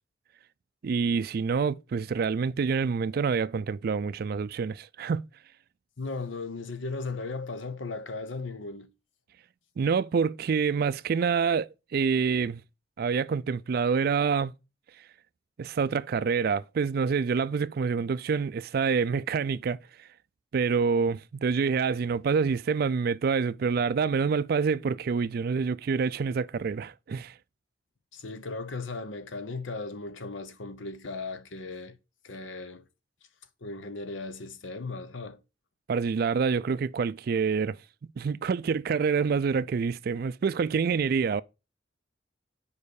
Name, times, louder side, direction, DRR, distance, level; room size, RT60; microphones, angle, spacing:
voice 1, 0.8-5.2 9.8-12.6 13.0-14.5 15.6-19.8 20.5-27.3 35.9-37.8 38.2-41.4, right 5 dB, 55° right, 0.3 m, -27 dB
voice 2, 6.0-8.9 28.1-32.0 32.2-32.8 33.6-35.4, left 3 dB, 85° left, 0.8 m, -37 dB
5.3 x 4.9 x 6.4 m
head